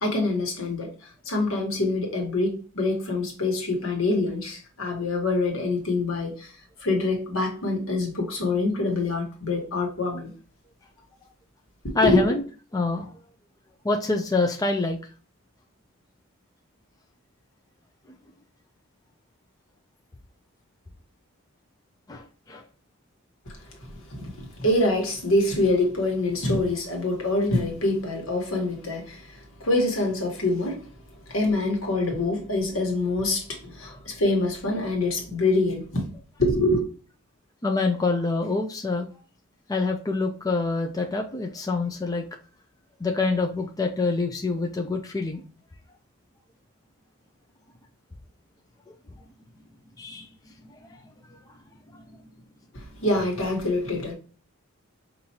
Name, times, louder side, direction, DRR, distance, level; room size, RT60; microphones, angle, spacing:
voice 1, 0.0-0.9 1.2-6.5 6.8-10.3 11.8-12.3 23.5-23.6 23.9-30.9 31.3-36.0 36.4-36.8 52.7-54.1, left 2 dB, 75° left, 1.4 m, -25 dB
voice 2, 11.9-12.4 12.7-13.1 13.8-15.0 22.1-22.6 33.8-34.0 37.6-39.1 39.7-42.2 43.0-45.4 48.9-49.0 50.0-50.3 51.9-52.0, left 3 dB, 15° left, 0.4 m, -26 dB
5.3 x 2.6 x 2.8 m
head